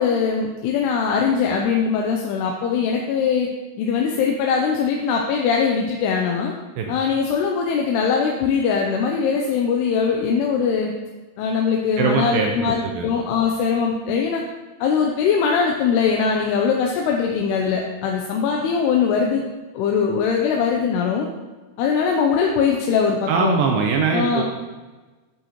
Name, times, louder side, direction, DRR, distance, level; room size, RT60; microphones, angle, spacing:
voice 1, 0.0-3.5 3.8-6.5 6.9-10.9 11.4-14.4 14.8-19.4 19.7-21.3 21.8-23.6 24.1-24.4, left 6 dB, 85° left, 1 dB, 2.8 m, -21 dB
voice 2, 12.0-13.1 23.3-24.4, right 5 dB, 80° right, 1 dB, 2.2 m, -22 dB
9.0 x 8.5 x 3.0 m, 1.3 s
omnidirectional pair, 4.6 m